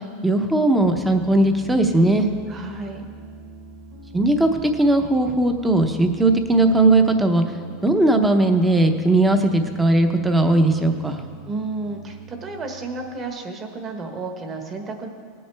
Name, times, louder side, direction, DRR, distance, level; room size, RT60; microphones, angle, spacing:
voice 1, 0.2-2.3 4.1-7.4 7.8-11.2, right 2 dB, 10° right, 6 dB, 0.7 m, -18 dB
Piano, 0.8-13.3, right 3 dB, 45° right, 1.8 m, -43 dB
voice 2, 2.5-3.0 11.5-15.1, right 3 dB, 25° right, 4 dB, 1.2 m, -32 dB
18.0 x 8.6 x 3.4 m, 2.1 s
supercardioid pair, 155°, 0 cm